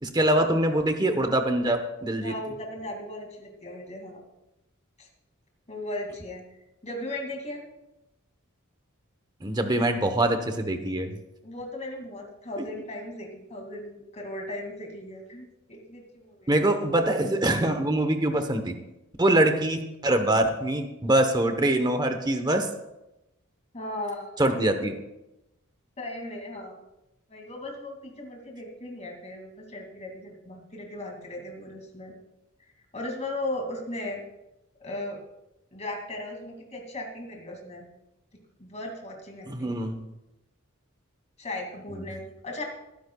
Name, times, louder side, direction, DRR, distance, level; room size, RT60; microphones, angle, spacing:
voice 1, 0.0-2.3 9.4-11.2 12.6-12.7 16.5-18.8 19.2-22.7 24.4-25.0 39.5-40.0, right 1 dB, 20° right, 7 dB, 1.0 m, -24 dB
voice 2, 2.2-4.3 5.0-5.1 5.7-6.4 6.8-7.6 11.4-16.8 23.7-24.4 26.0-26.8 27.3-32.1 32.9-34.2 34.8-35.2 35.7-37.9 38.6-39.8 41.4-42.6, left 1 dB, 30° left, 1 dB, 2.5 m, -37 dB
20.0 x 10.5 x 2.4 m, 0.93 s
head